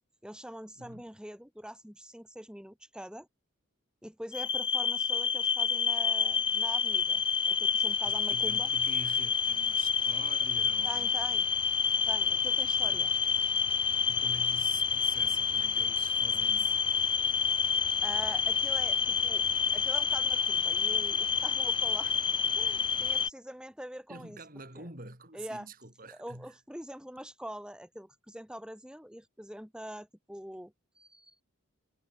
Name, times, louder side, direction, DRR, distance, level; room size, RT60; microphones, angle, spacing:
voice 1, 0.2-3.3 4.0-8.7 10.8-11.5 12.1-13.1 18.0-19.4 19.7-22.1 22.6-24.4 24.8-24.9 25.3-25.7 26.1-31.4, equal, 5° right, 5.4 m, -44 dB
sound 1, 4.3-23.3, left 6 dB, 25° left, 1.1 m, -28 dB
voice 2, 8.0-11.1 12.8-13.0 14.1-16.8 24.1-26.5, right 2 dB, 40° right, 6.4 m, -47 dB
head